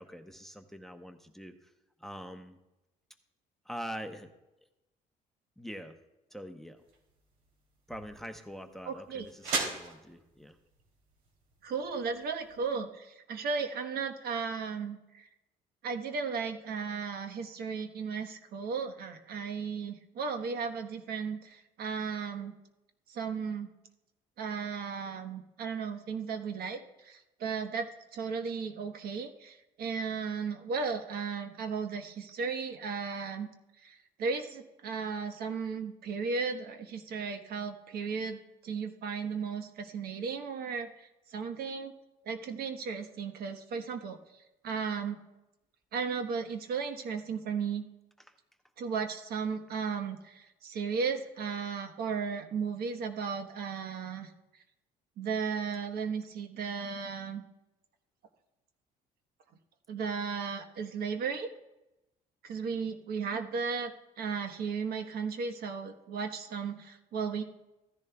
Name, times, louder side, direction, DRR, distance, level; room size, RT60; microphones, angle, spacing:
voice 1, 0.0-1.5 2.0-2.6 3.7-4.3 5.6-5.9 6.3-6.8 7.9-10.5, equal, ahead, 7 dB, 0.8 m, -44 dB
sound 1, 6.8-12.7, right 3 dB, 90° right, 3.0 m, -41 dB
voice 2, 8.8-9.3 11.6-15.3 15.8-22.5 23.1-23.7 24.4-33.5 33.8-41.9 42.2-44.2 44.6-45.2 45.9-47.9 48.8-54.3 55.2-57.4 59.9-61.5 62.4-63.9 64.2-67.4, right 5 dB, 65° right, 6 dB, 1.2 m, -35 dB
15.5 x 10.5 x 2.3 m, 0.95 s
cardioid pair, 110°, 17 cm